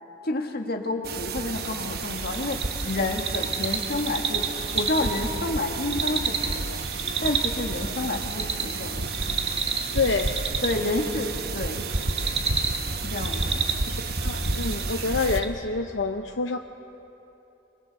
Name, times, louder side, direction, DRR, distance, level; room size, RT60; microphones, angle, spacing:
voice 1, 0.2-4.5 4.7-6.8 7.2-9.1 10.6-11.8 13.0-13.6, left 2 dB, 55° left, 4 dB, 1.7 m, -29 dB
sound 1, 1.0-15.4, right 3 dB, 55° right, 1.1 m, -31 dB
sound 2, 1.5-15.5, right 4 dB, 35° right, 1.5 m, -32 dB
voice 2, 9.9-10.4 13.9-14.0 14.2-16.6, left 4 dB, 75° left, 5 dB, 0.8 m, -27 dB
28.0 x 24.5 x 4.1 m, 3.0 s
head